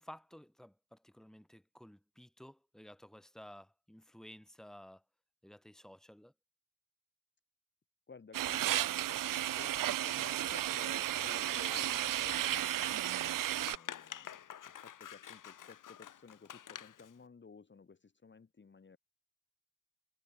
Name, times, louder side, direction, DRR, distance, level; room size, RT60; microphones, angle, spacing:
voice 1, 0.0-5.0 5.4-6.3, equal, ahead, 2.6 m, -54 dB
voice 2, 8.1-9.0 9.5-12.9 13.6-14.4 14.8-19.0, left 5 dB, 30° left, 2.1 m, -55 dB
sound 1, 8.3-13.8, right 13 dB, 70° right, 0.6 m, -33 dB
Scissors, 11.0-17.1, left 10 dB, 60° left, 1.2 m, -50 dB
wide cardioid pair, 135°, 35 cm